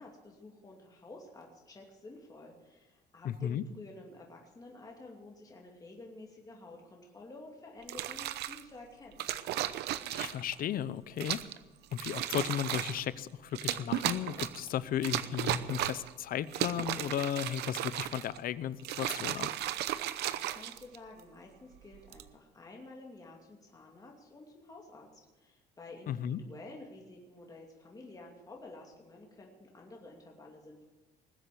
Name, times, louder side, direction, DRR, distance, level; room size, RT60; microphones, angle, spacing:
voice 1, 0.0-9.3 20.2-30.9, left 2 dB, 20° left, -1 dB, 2.6 m, -51 dB
voice 2, 3.2-3.6 10.1-11.4 11.9-19.5 26.1-26.4, left 10 dB, 60° left, 17 dB, 0.7 m, -35 dB
sound 1, 7.8-8.6 9.2-10.5 11.2-11.6 11.9-13.0 13.5-14.7 15.0-16.1 16.5-18.4 18.8-21.2 21.9-22.3, right 13 dB, 80° right, 0.8 m, -35 dB
20.5 x 8.0 x 7.7 m, 1.2 s
cardioid pair, 110°, 17 cm